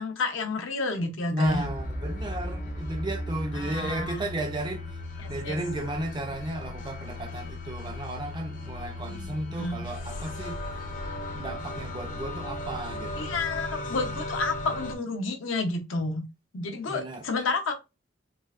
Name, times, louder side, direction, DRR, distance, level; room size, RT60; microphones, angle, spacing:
voice 1, 0.0-1.6 3.5-4.2 5.2-5.6 9.1-9.3 9.6-9.8 13.2-16.2 16.5-17.7, left 3 dB, 85° left, 0.6 m, -30 dB
voice 2, 1.3-4.9 5.3-10.6 11.3-13.3 16.9-17.2, right 1 dB, 25° right, 0.4 m, -33 dB
sound 1, 1.4-15.0, left 1 dB, 40° left, 0.5 m, -36 dB
3.1 x 2.0 x 2.4 m
head